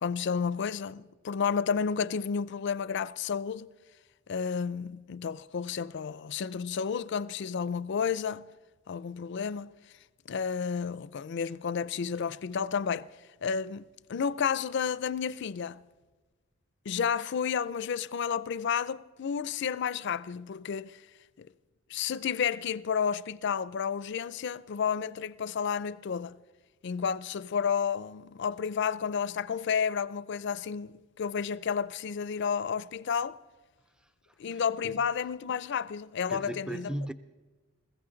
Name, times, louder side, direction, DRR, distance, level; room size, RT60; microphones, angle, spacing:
voice 1, 0.0-3.7 4.3-8.5 8.9-9.7 10.3-13.1 13.4-15.8 16.9-21.0 21.4-21.5 21.9-26.4 26.8-33.4 34.4-36.9, left 6 dB, 60° left, 0.4 m, -31 dB
voice 2, 34.0-35.0 36.3-37.1, equal, 5° right, 0.4 m, -39 dB
21.0 x 15.5 x 3.9 m
head